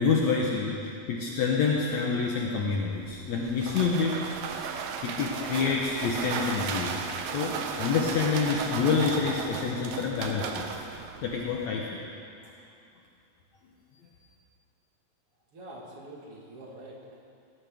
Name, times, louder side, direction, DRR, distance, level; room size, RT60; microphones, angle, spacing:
voice 1, 0.0-4.2 5.0-6.9 7.2-10.7 11.2-11.9, left 5 dB, 65° left, -2 dB, 2.0 m, -27 dB
sound 1, 2.9-11.7, right 6 dB, 80° right, 2.6 m, -35 dB
voice 2, 15.5-17.2, right 1 dB, 50° right, -2 dB, 2.3 m, -45 dB
18.5 x 14.0 x 3.5 m, 2.5 s
omnidirectional pair, 4.0 m